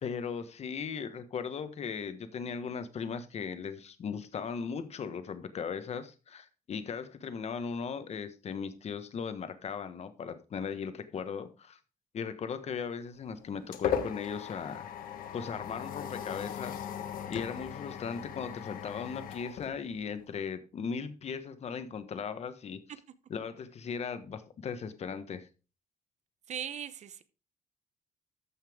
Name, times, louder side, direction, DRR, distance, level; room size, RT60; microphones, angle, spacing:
voice 1, 0.0-11.8 12.1-14.9 15.3-16.8 17.3-22.8 23.3-25.5, left 6 dB, 50° left, 1.3 m, -38 dB
sound 1, 13.0-20.4, left 8 dB, 80° left, 1.4 m, -38 dB
voice 2, 26.5-27.2, right 9 dB, 55° right, 0.9 m, -38 dB
14.0 x 5.7 x 3.6 m
cardioid pair, 120°, 14 cm